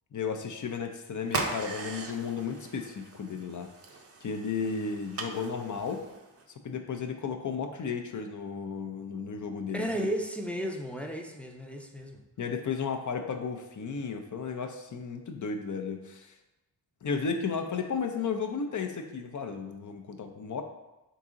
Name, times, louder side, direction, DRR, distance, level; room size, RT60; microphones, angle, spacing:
voice 1, 0.1-3.7 4.2-6.0 6.6-10.1 12.4-16.3 17.0-20.6, left 5 dB, 45° left, 5 dB, 0.6 m, -34 dB
sound 1, 1.2-6.4, right 3 dB, 35° right, 0.6 m, -39 dB
voice 2, 9.7-12.2, right 1 dB, 5° left, 1 dB, 0.6 m, -34 dB
3.8 x 2.9 x 3.7 m, 1.0 s
cardioid pair, 60°, 41 cm